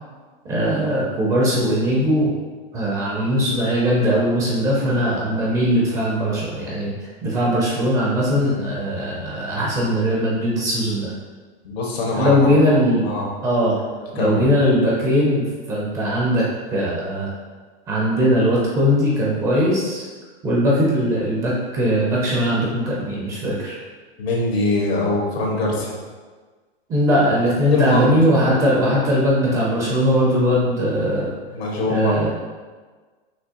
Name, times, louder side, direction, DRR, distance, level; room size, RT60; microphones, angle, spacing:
voice 1, 0.4-2.3 2.7-11.1 12.1-13.1 13.4-13.8 14.1-17.3 17.9-20.1 20.4-23.8 26.9-31.3 31.9-32.3, equal, 10° right, -5 dB, 0.4 m, -20 dB
voice 2, 11.6-12.7 13.0-13.3 14.1-14.4 24.2-26.0 27.7-28.1 31.5-32.2, left 2 dB, 85° left, -3 dB, 1.5 m, -22 dB
6.1 x 2.8 x 2.8 m, 1.4 s
supercardioid pair, 165°, 30 cm